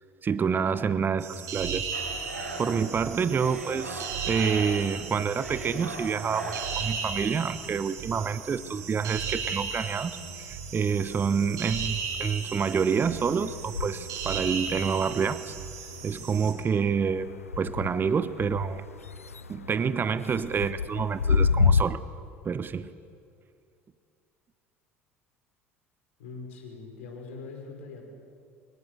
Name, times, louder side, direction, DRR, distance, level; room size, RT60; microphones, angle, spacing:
voice 1, 0.2-1.9 2.6-15.5 16.0-17.3 17.6-18.8 19.5-22.0 22.4-22.9, right 6 dB, 25° right, 15 dB, 1.0 m, -28 dB
sound 1, 1.2-16.5, right 5 dB, 50° right, 5.6 m, -36 dB
sound 2, 1.9-7.1, right 2 dB, 85° right, 3.3 m, -39 dB
sound 3, 8.6-9.8 10.1-21.8, left 5 dB, 80° left, 0.5 m, -32 dB
voice 2, 26.2-28.1, left 4 dB, 65° left, 2 dB, 5.3 m, -42 dB
24.5 x 23.5 x 7.9 m, 2.4 s
figure-of-eight pair, 65°, 7 cm